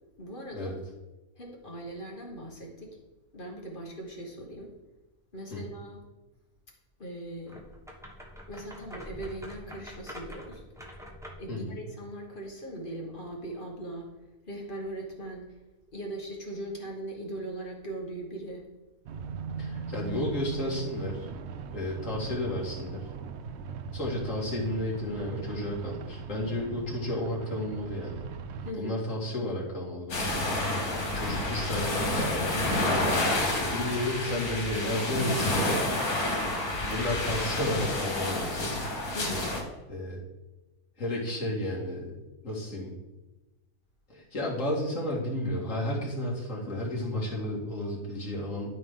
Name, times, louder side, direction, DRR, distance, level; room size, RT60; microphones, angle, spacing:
voice 1, 0.2-0.7 1.4-3.0 3.3-4.7 5.3-6.0 7.0-7.6 8.5-10.6 11.4-14.1 14.5-15.4 15.9-18.7 28.6-29.0 39.1-39.5, right 1 dB, 35° left, -1 dB, 1.4 m, -40 dB
sound 1, 7.4-11.5, equal, ahead, 0.9 m, -45 dB
voice 2, 11.5-11.8 19.6-21.3 21.7-23.1 23.9-28.2 28.8-30.5 31.1-35.9 36.8-38.8 39.9-40.2 41.0-42.1 42.4-42.9 44.1-48.7, left 1 dB, 55° left, -3 dB, 2.5 m, -32 dB
sound 2, 19.1-28.7, right 6 dB, 70° right, 0.6 m, -39 dB
sound 3, 30.1-39.6, left 1 dB, 90° left, 2.5 m, -29 dB
12.0 x 4.9 x 3.7 m, 1.1 s
omnidirectional pair, 1.6 m